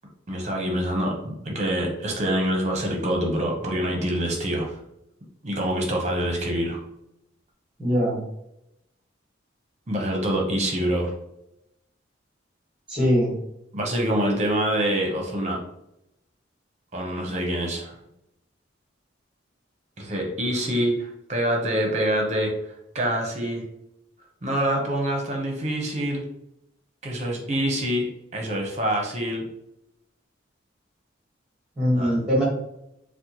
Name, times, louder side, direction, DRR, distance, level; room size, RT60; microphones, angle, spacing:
voice 1, 0.3-4.8 5.4-6.8 9.9-11.1 13.7-15.6 16.9-18.0 20.0-22.5 22.9-23.6 24.4-26.2 27.0-28.1 28.3-29.5 31.9-32.2, right 1 dB, 35° right, 0 dB, 0.8 m, -25 dB
voice 2, 7.8-8.2 12.9-13.3 31.8-32.4, equal, 5° right, -7 dB, 1.3 m, -21 dB
4.2 x 2.2 x 2.9 m, 0.81 s
head